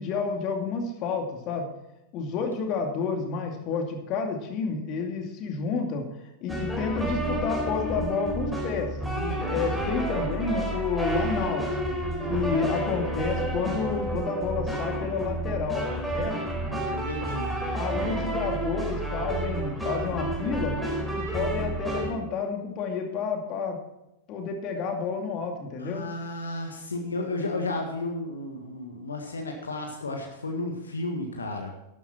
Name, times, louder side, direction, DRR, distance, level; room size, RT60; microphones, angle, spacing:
voice 1, 0.0-1.7 2.1-6.0 6.4-8.9 9.5-11.7 12.3-15.9 16.1-16.4 17.7-23.8 24.3-26.0, left 5 dB, 40° left, 3 dB, 2.5 m, -30 dB
sound 1, 6.5-22.1, right 1 dB, 5° right, 4.3 m, -30 dB
voice 2, 9.1-9.7 12.2-12.7 16.2-17.6 18.4-18.5 25.8-31.7, left 2 dB, 75° left, 3 dB, 1.7 m, -33 dB
12.5 x 12.0 x 4.4 m, 0.89 s
figure-of-eight pair, 90°, 0 cm